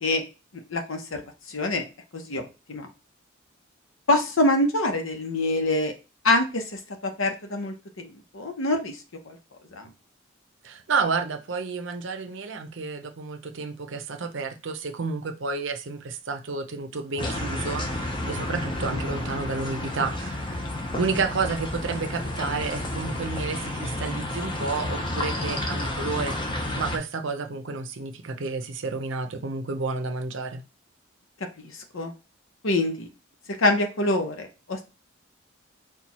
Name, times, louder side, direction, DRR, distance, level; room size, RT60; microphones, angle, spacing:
voice 1, 0.7-1.2 1.5-1.8 2.1-2.9 4.1-5.9 6.2-6.6 7.0-8.1 8.3-9.0 9.3-9.4 9.7-9.9 18.9-19.0 31.6-32.1 32.6-33.1 33.6-34.8, left 2 dB, 80° left, 0.8 m, -25 dB
voice 2, 10.6-20.7 21.0-30.6, right 4 dB, 65° right, 0.6 m, -31 dB
sound 1, 17.2-27.0, left 1 dB, 25° left, 0.6 m, -31 dB
4.4 x 2.3 x 4.1 m
head